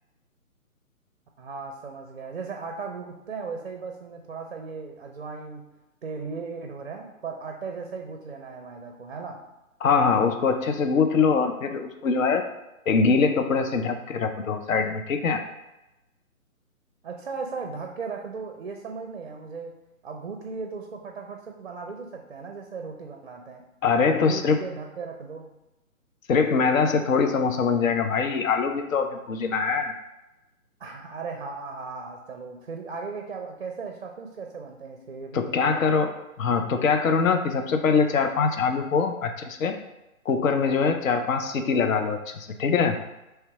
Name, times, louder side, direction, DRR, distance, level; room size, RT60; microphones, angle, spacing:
voice 1, 1.4-5.7 6.0-9.5 17.0-19.8 20.0-23.7 24.1-25.5 30.8-35.9, right 4 dB, 45° right, 4 dB, 0.4 m, -37 dB
voice 2, 9.8-12.4 12.9-15.4 23.8-24.6 26.3-30.0 35.3-36.1 36.4-39.7 40.3-43.0, left 5 dB, 65° left, 6 dB, 0.6 m, -23 dB
3.3 x 2.8 x 4.5 m, 0.96 s
figure-of-eight pair, 150°, 43 cm